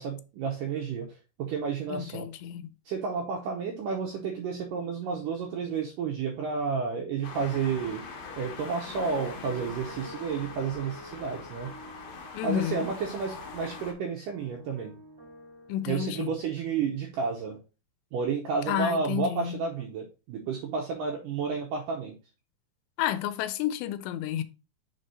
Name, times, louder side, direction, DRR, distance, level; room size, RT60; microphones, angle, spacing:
voice 1, 0.0-2.3 2.9-8.0 8.4-11.7 12.4-15.0 15.9-17.6 18.1-22.1, right 5 dB, 80° right, 1.9 m, -31 dB
voice 2, 1.9-2.7 12.3-13.0 15.7-16.3 18.7-19.6 23.0-24.4, left 12 dB, 90° left, 2.8 m, -31 dB
sound 1, 7.2-13.9, left 4 dB, 65° left, 2.7 m, -42 dB
sound 2, 8.8-16.0, equal, 10° right, 1.9 m, -49 dB
6.5 x 3.7 x 4.0 m
omnidirectional pair, 4.8 m